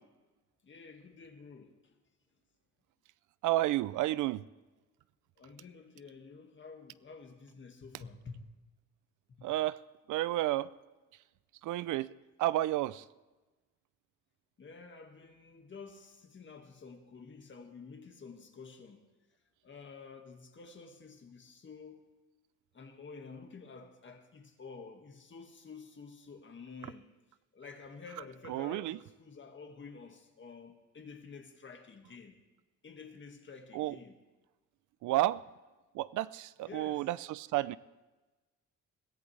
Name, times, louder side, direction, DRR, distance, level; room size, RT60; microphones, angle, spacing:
voice 1, 0.6-1.9 5.4-8.6 9.3-9.5 14.6-19.0 19.6-22.1 22.7-27.1 27.5-32.4 32.8-34.2 36.6-37.1, left 4 dB, 40° left, 1.8 m, -50 dB
voice 2, 3.4-4.4 9.4-9.8 10.1-10.7 11.6-12.1 12.4-13.0 28.5-29.0 33.7-33.9 35.0-35.4 35.9-37.8, right 15 dB, 80° right, 0.5 m, -31 dB
21.5 x 14.5 x 3.3 m
cardioid pair, 90°, 30 cm